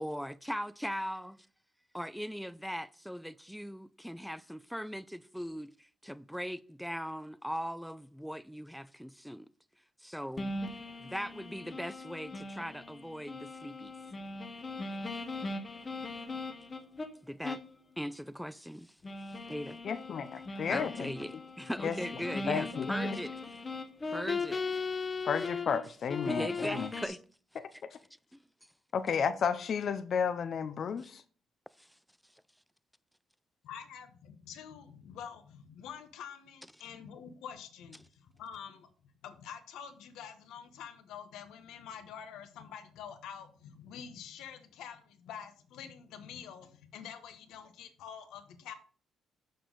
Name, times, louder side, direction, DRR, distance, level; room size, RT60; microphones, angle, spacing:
voice 1, 0.0-1.4 1.9-5.7 6.0-9.5 10.0-10.5 11.0-13.9 17.3-17.6 18.0-18.9 19.5-19.8 20.7-23.3 24.1-24.6 26.2-27.2, equal, ahead, 0.4 m, -39 dB
sound 1, 10.4-17.1 17.4-17.7 18.1-18.2 19.0-25.8 26.1-27.1, left 3 dB, 30° left, 1.0 m, -38 dB
voice 2, 19.8-21.1 21.8-21.9 22.5-22.9 25.2-26.9 28.9-31.2, left 7 dB, 55° left, 0.5 m, -32 dB
voice 3, 33.6-38.9 39.2-48.7, left 8 dB, 90° left, 1.0 m, -47 dB
6.5 x 6.2 x 3.9 m
cardioid pair, 90°, 0 cm